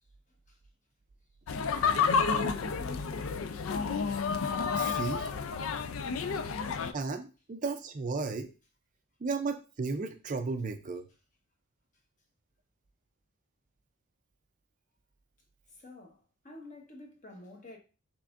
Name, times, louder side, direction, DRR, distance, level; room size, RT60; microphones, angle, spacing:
sound 1, 1.5-6.9, left 5 dB, 65° left, 0.4 m, -30 dB
voice 1, 2.3-3.5 5.8-5.9 15.7-17.8, left 1 dB, 35° left, 1.1 m, -49 dB
voice 2, 4.7-5.3 6.9-8.5 9.2-11.0, right 4 dB, 35° right, 0.4 m, -34 dB
5.8 x 3.5 x 2.5 m
head